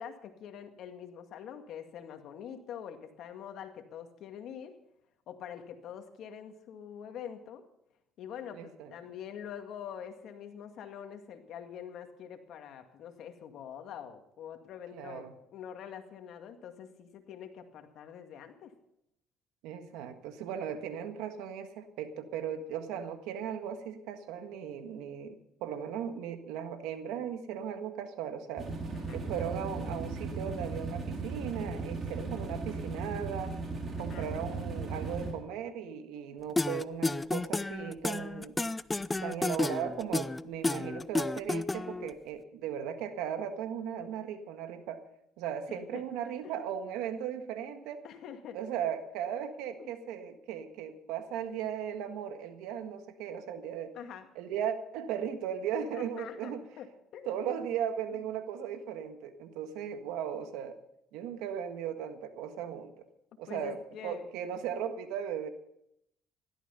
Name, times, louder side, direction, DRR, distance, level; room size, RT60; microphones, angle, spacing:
voice 1, 0.0-4.8 5.3-7.6 8.2-18.7 28.9-29.2 34.0-34.3 45.7-46.0 46.4-46.6 48.0-48.6 49.8-50.0 53.9-54.3 55.9-57.6 63.5-64.2, left 8 dB, 70° left, 6 dB, 2.1 m, -45 dB
voice 2, 8.5-8.9 14.9-15.3 19.6-28.7 29.1-33.6 34.0-38.5 39.2-45.0 45.4-48.0 48.5-53.9 54.3-56.6 57.3-60.8 61.1-63.1 63.4-65.5, right 8 dB, 85° right, 8 dB, 1.6 m, -37 dB
sound 1, 28.6-35.3, right 3 dB, 40° right, 4.8 m, -37 dB
sound 2, 36.6-42.1, left 2 dB, 15° left, 0.5 m, -31 dB
16.5 x 12.5 x 5.5 m, 0.78 s
cardioid pair, 90°, 0 cm